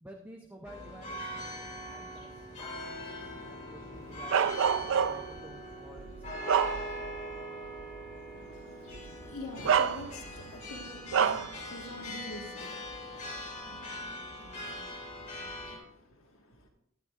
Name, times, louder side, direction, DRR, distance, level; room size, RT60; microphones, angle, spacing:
voice 1, 0.0-4.6 5.1-6.1 6.4-6.7, equal, 10° right, 3 dB, 0.7 m, -52 dB
sound 1, 0.6-15.8, left 1 dB, 35° left, 2.7 m, -42 dB
Bark, 4.3-5.4 6.0-7.2 7.7-7.8 8.9-9.1 9.6-10.4 11.1-11.5, right 7 dB, 60° right, 0.4 m, -27 dB
voice 2, 8.3-16.7, left 1 dB, 75° left, 2 dB, 1.6 m, -47 dB
13.0 x 11.0 x 2.4 m, 0.71 s
head